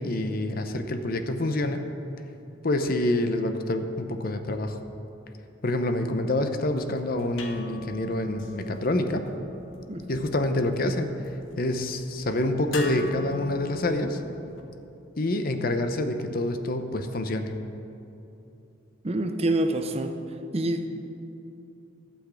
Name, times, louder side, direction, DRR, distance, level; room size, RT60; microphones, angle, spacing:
voice 1, 0.0-1.9 2.6-4.8 5.6-9.3 10.1-11.2 11.6-14.2 15.1-17.5, left 1 dB, 45° left, 7 dB, 0.7 m, -27 dB
sound 1, 6.6-14.6, left 2 dB, 80° left, 1.1 m, -43 dB
voice 2, 19.0-20.2 20.5-20.9, right 1 dB, 30° right, 7 dB, 0.6 m, -26 dB
12.0 x 6.0 x 8.2 m, 2.8 s
head